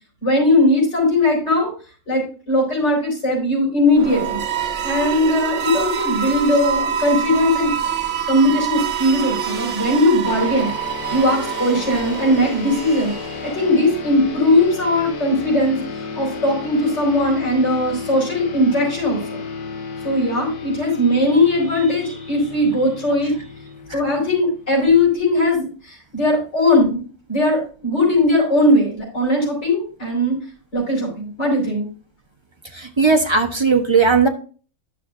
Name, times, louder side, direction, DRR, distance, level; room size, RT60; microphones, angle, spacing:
voice 1, 0.2-1.7 2.1-4.4 4.8-7.7 8.3-10.7 11.1-13.1 13.4-15.8 16.1-19.4 20.0-23.3 23.9-27.0 27.3-30.4 30.7-31.9, left 1 dB, 45° left, -4 dB, 4.8 m, -19 dB
sound 1, 3.9-13.8, right 8 dB, 60° right, 1.2 m, -26 dB
sound 2, 10.3-25.1, left 4 dB, 90° left, 1.6 m, -33 dB
voice 2, 32.7-34.3, right 4 dB, 25° right, 4 dB, 0.7 m, -17 dB
11.5 x 6.5 x 2.5 m, 0.38 s
omnidirectional pair, 1.6 m